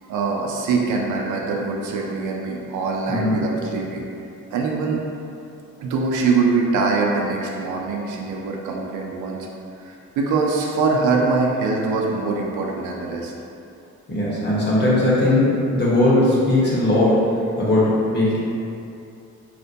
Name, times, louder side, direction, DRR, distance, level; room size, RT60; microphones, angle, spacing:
voice 1, 0.0-4.0 4.5-5.0 5.8-9.5 9.8-13.3, right 4 dB, 80° right, -1 dB, 0.5 m, -23 dB
voice 2, 3.1-3.4 14.1-15.5 15.7-17.2 17.6-18.4, left 1 dB, 35° left, -8 dB, 1.1 m, -18 dB
4.2 x 2.1 x 2.7 m, 2.7 s
cardioid pair, 90°, 30 cm